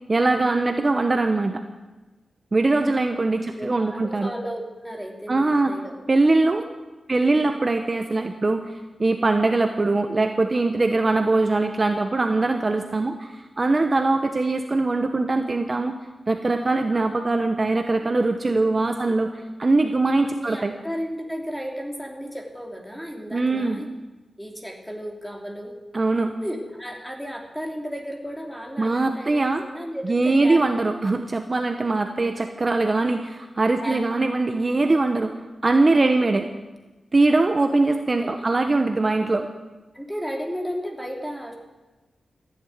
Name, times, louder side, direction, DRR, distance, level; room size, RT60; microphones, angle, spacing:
voice 1, 0.1-1.6 2.5-4.3 5.3-5.7 6.1-6.6 7.1-15.9 16.3-19.3 19.6-20.7 23.3-23.8 25.9-26.3 28.8-29.6 30.0-35.3 35.6-36.5 37.1-39.5, right 2 dB, 30° right, 6 dB, 1.0 m, -22 dB
voice 2, 3.5-5.9 7.1-7.6 18.7-19.1 20.0-23.9 24.4-25.7 26.2-29.3 29.6-30.9 32.1-32.4 33.8-34.0 36.0-36.2 37.9-38.5 39.9-41.5, equal, 5° left, 1 dB, 2.9 m, -34 dB
14.5 x 10.5 x 9.4 m, 1.2 s
wide cardioid pair, 110°, 0 cm